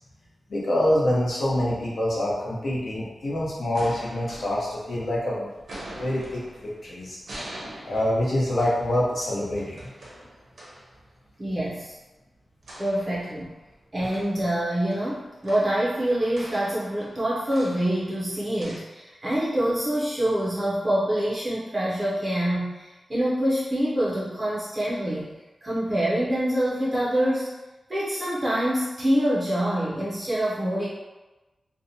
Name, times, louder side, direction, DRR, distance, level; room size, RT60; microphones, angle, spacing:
voice 1, 0.5-5.5 5.8-7.2 7.9-9.9, left 1 dB, 60° left, -6 dB, 0.7 m, -26 dB
sound 1, 3.4-5.2 5.6-11.0 12.6-13.7 14.0-18.8, right 1 dB, 70° right, 0.6 m, -44 dB
voice 2, 11.4-11.9 12.8-13.5 13.9-27.5 27.9-30.9, right 1 dB, 25° right, -8 dB, 0.5 m, -26 dB
2.7 x 2.1 x 2.6 m, 1.1 s
wide cardioid pair, 140°, 0 cm